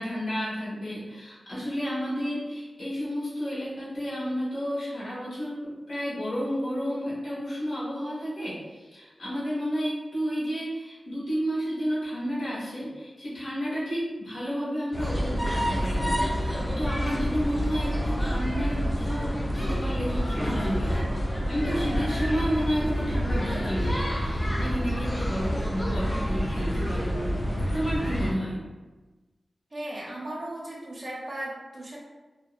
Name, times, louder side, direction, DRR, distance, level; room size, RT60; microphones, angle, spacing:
voice 1, 0.0-5.5 5.9-21.1 21.5-27.3 27.7-28.6, equal, 85° left, -9 dB, 1.1 m, -31 dB
sound 1, 14.9-28.3, equal, 20° left, 0.4 m, -28 dB
voice 2, 29.7-32.0, right 1 dB, 40° right, -4 dB, 0.6 m, -36 dB
2.8 x 2.0 x 2.4 m, 1.2 s
wide cardioid pair, 75°, 0 cm